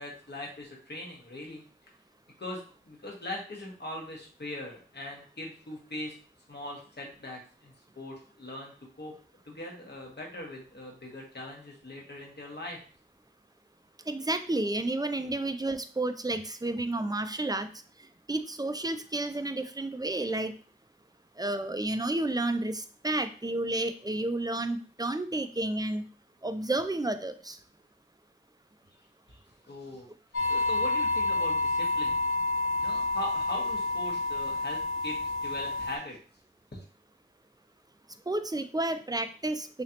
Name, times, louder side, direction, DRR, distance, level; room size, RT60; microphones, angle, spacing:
voice 1, 0.0-1.6 2.4-6.2 6.5-9.1 9.4-12.8 29.3-29.4 29.7-30.1 30.4-32.2 32.8-36.2 36.7-36.8, left 1 dB, 55° left, -1 dB, 1.3 m, -41 dB
voice 2, 14.1-17.7 18.0-20.5 21.4-26.0 26.4-27.6 38.3-39.8, right 2 dB, 20° right, 10 dB, 0.4 m, -31 dB
sound 1, 30.3-36.0, left 2 dB, 85° left, 1.0 m, -29 dB
3.8 x 3.1 x 2.9 m, 0.41 s
wide cardioid pair, 45°, 21 cm